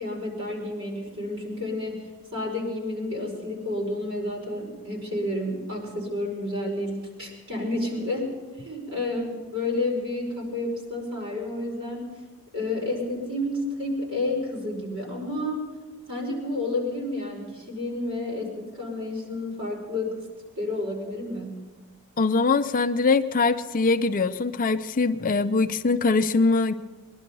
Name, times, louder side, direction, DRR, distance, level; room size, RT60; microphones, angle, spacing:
voice 1, 0.0-2.0 2.3-12.1 12.5-15.7 16.1-20.3 20.6-21.6, left 2 dB, 60° right, -2 dB, 5.3 m, -30 dB
voice 2, 22.2-26.7, left 4 dB, 40° left, 10 dB, 0.5 m, -22 dB
21.5 x 11.5 x 5.4 m, 1.3 s
head